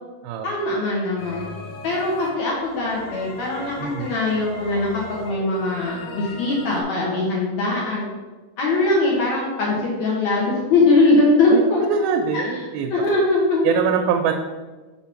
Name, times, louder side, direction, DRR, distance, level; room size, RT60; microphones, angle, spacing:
voice 1, 0.4-1.5 1.8-8.0 8.6-11.8 12.3-12.6 12.9-13.8, left 2 dB, 65° left, -4 dB, 2.0 m, -21 dB
sound 1, 1.2-6.8, left 3 dB, 85° left, 3.0 m, -38 dB
voice 2, 3.8-4.1 11.5-11.6 11.9-13.1 13.6-14.3, right 7 dB, 85° right, 3 dB, 2.4 m, -23 dB
6.1 x 3.8 x 5.7 m, 1.3 s
omnidirectional pair, 4.3 m